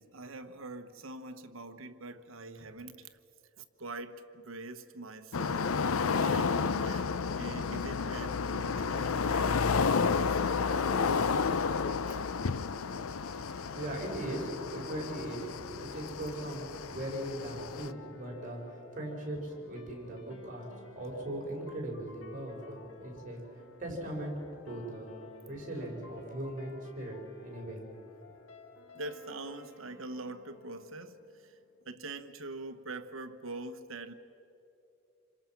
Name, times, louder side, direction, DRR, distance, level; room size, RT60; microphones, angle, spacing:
voice 1, 0.0-3.2 3.6-10.6 12.1-12.2 13.2-13.9 28.9-31.6 31.8-34.1, right 2 dB, 75° right, 1.2 m, -44 dB
sound 1, 5.3-17.9, left 5 dB, 90° left, 0.6 m, -31 dB
sound 2, 12.9-31.9, left 4 dB, 70° left, 1.7 m, -55 dB
voice 2, 13.7-15.5 15.8-23.4 23.8-24.4 24.6-25.1 25.5-27.8, right 1 dB, 40° right, 5.5 m, -39 dB
28.0 x 26.0 x 6.0 m
head